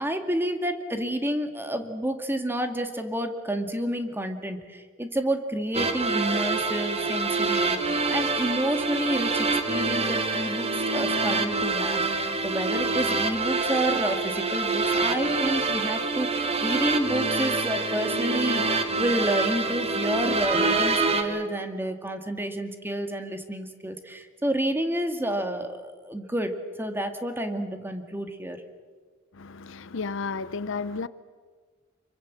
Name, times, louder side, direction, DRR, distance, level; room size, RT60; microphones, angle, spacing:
voice 1, 0.0-26.5 26.8-28.6, right 1 dB, 10° right, 2.0 m, -29 dB
sound 1, 5.7-21.2, right 3 dB, 30° right, 2.1 m, -26 dB
voice 2, 29.3-31.1, left 4 dB, 65° left, 0.7 m, -32 dB
26.0 x 24.0 x 7.5 m
head